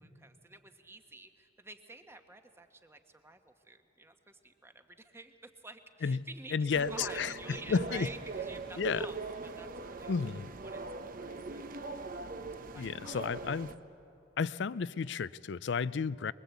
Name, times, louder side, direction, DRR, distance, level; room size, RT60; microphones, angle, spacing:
voice 1, 0.0-9.2 9.6-10.1 10.6-11.8 12.7-13.5, right 2 dB, 15° right, 1.2 m, -51 dB
voice 2, 6.5-8.1 8.8-9.1 10.1-10.5 12.8-13.7 14.4-16.3, left 5 dB, 70° left, 0.5 m, -32 dB
sound 1, 6.7-13.7, right 3 dB, 50° right, 0.9 m, -41 dB
24.0 x 21.5 x 8.3 m
head